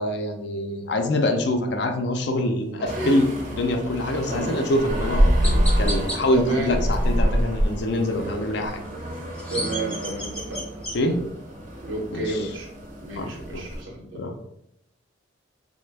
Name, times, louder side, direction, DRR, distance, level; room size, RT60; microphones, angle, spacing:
voice 1, 0.0-8.8 10.9-11.2 12.1-12.5 13.2-13.6 14.1-14.3, left 1 dB, 60° left, 4 dB, 0.4 m, -25 dB
voice 2, 2.8-3.2 4.3-4.5 6.3-6.7 9.5-10.6 11.8-12.7 13.0-14.2, right 2 dB, 85° right, 1 dB, 0.8 m, -31 dB
sound 1, 2.9-13.8, equal, 40° right, 0.5 m, -26 dB
Chirp tweet, 4.5-4.7 5.4-6.2 9.1-11.0, equal, 5° left, 0.6 m, -32 dB
3.2 x 2.1 x 3.3 m, 0.79 s
head